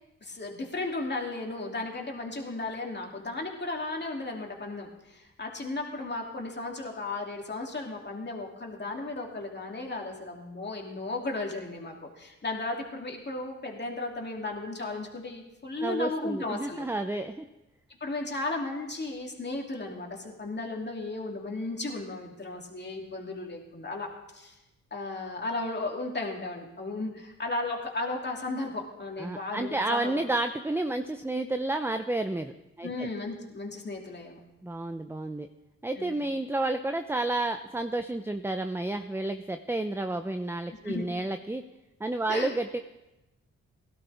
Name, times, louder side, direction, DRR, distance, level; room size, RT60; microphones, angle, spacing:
voice 1, 0.2-16.9 18.0-24.6 24.9-30.2 32.8-34.4 36.0-36.2 40.8-41.1 42.3-42.5, left 2 dB, 35° left, 0 dB, 2.8 m, -35 dB
voice 2, 15.8-17.4 29.2-32.5 32.8-33.1 34.6-35.5 35.8-41.6 42.0-42.8, right 2 dB, 10° right, 8 dB, 0.7 m, -31 dB
17.5 x 12.0 x 3.5 m, 1.0 s
supercardioid pair, 50°, 30 cm